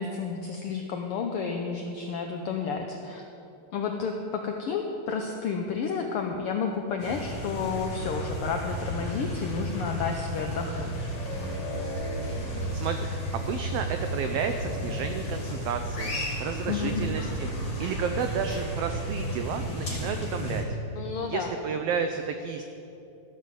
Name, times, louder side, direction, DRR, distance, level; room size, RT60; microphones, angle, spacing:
voice 1, 0.0-3.2 3.7-11.1 16.7-17.0 21.0-21.5, left 5 dB, 90° left, 3 dB, 1.2 m, -31 dB
sound 1, 7.0-20.6, equal, 40° left, 2.8 m, -33 dB
voice 2, 12.7-16.1 16.4-17.5 17.8-20.6 21.2-22.6, right 7 dB, 90° right, 6 dB, 1.3 m, -31 dB
14.0 x 5.5 x 7.4 m, 2.8 s
omnidirectional pair, 3.4 m